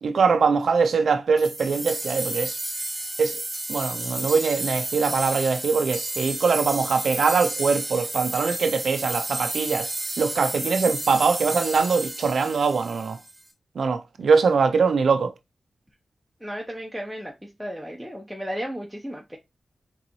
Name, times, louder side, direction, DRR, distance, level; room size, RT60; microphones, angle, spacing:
voice 1, 0.0-2.6 3.2-3.4 3.7-9.9 10.2-13.2 13.8-15.3, right 5 dB, 80° right, 0.4 m, -22 dB
sound 1, 1.4-13.4, right 1 dB, 20° right, 1.5 m, -32 dB
voice 2, 16.4-19.4, equal, ahead, 0.8 m, -34 dB
3.8 x 3.8 x 3.0 m
cardioid pair, 70°, 0 cm